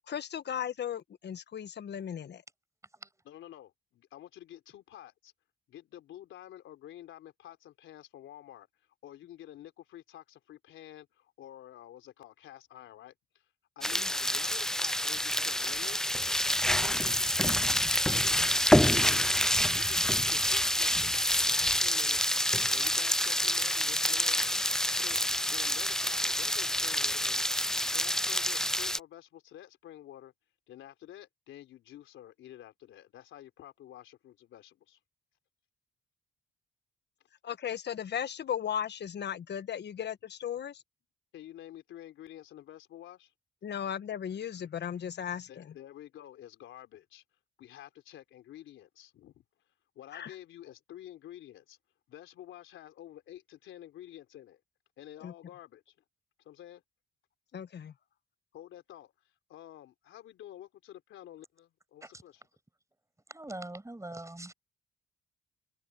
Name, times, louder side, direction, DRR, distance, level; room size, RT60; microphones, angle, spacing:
voice 1, 0.1-2.4 13.8-14.1 37.4-40.8 43.6-45.7 50.1-50.3 55.2-55.3 57.5-57.9, left 9 dB, 60° left, 1.4 m, -36 dB
voice 2, 3.3-5.3 5.7-8.7 9.0-13.5 13.8-16.1 16.6-17.7 17.9-19.3 19.7-22.3 22.7-24.6 25.0-27.5 27.8-30.3 30.7-35.0 41.3-43.3 45.5-47.2 47.6-49.4 50.0-51.8 52.1-54.6 55.0-55.9 56.4-56.8 58.5-59.1 59.5-62.4, left 12 dB, 80° left, 3.8 m, -50 dB
sound 1, 13.8-29.0, left 1 dB, 5° left, 0.4 m, -27 dB
voice 3, 63.3-64.5, right 2 dB, 15° right, 7.1 m, -42 dB
supercardioid pair, 60°, 20 cm